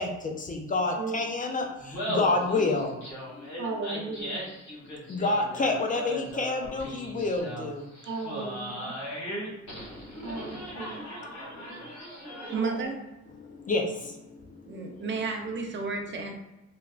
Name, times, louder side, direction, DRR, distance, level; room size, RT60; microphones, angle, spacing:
voice 1, 0.0-1.7 2.1-2.9 5.1-7.8 13.7-13.9, left 3 dB, 30° left, 2 dB, 0.4 m, -27 dB
Laughter, 1.8-12.8, equal, 65° left, 1.5 m, -38 dB
voice 2, 3.6-4.4 8.1-9.0 10.2-11.1 12.4-12.9, right 3 dB, 80° right, -2 dB, 0.9 m, -36 dB
voice 3, 12.5-13.0 14.7-16.3, right 4 dB, 40° right, 3 dB, 0.6 m, -32 dB
3.2 x 2.3 x 2.4 m, 1.0 s
cardioid pair, 90°, 30 cm